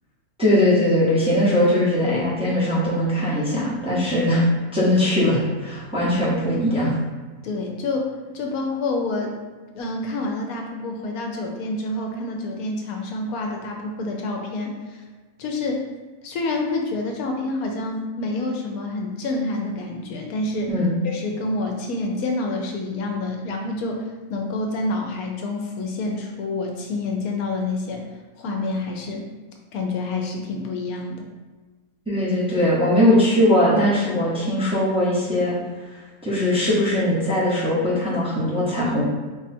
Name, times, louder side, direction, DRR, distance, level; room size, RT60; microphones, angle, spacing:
voice 1, 0.4-4.4 4.7-6.9 20.7-20.9 32.1-35.5 35.9-39.0, left 1 dB, 5° right, -9 dB, 0.9 m, -20 dB
voice 2, 7.4-9.3 9.7-15.0 15.4-15.8 16.2-20.7 21.0-24.0 24.3-28.0 28.4-29.2 29.7-31.2, left 2 dB, 75° left, 1 dB, 1.0 m, -28 dB
4.0 x 2.4 x 4.2 m, 1.3 s
omnidirectional pair, 1.6 m